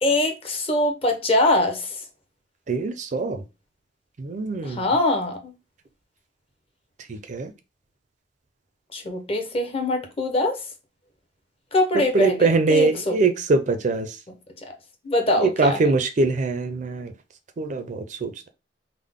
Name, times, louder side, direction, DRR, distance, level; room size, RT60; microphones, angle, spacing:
voice 1, 0.0-2.0 4.6-5.5 8.9-10.6 11.7-13.2 15.0-15.8, left 1 dB, 35° left, 0.7 m, -23 dB
voice 2, 2.7-3.4 4.2-4.9 7.1-7.5 12.1-14.2 15.4-17.1 17.6-18.5, right 3 dB, 45° right, 0.4 m, -23 dB
3.6 x 2.0 x 3.5 m
head